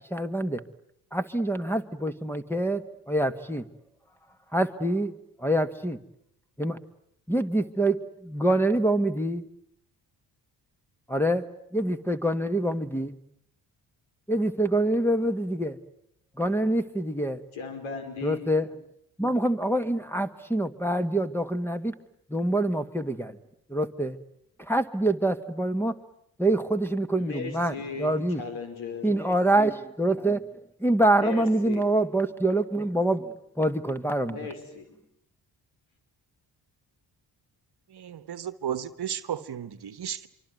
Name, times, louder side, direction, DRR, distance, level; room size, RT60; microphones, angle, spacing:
voice 1, 0.1-0.6 1.1-3.6 4.5-5.1 5.4-6.0 6.6-6.8 7.3-9.5 11.1-13.2 14.3-15.8 16.4-17.4 18.2-18.7 19.2-21.9 22.3-23.4 23.7-24.2 24.6-25.9 26.4-28.4 29.0-30.4 30.8-34.4, right 1 dB, 5° left, 1.7 m, -25 dB
voice 2, 17.5-18.5 27.1-29.1 31.2-31.9 34.3-34.9, left 5 dB, 85° left, 5.1 m, -37 dB
voice 3, 37.9-40.3, right 9 dB, 55° right, 1.3 m, -34 dB
25.5 x 24.5 x 9.4 m
supercardioid pair, 60°, 46 cm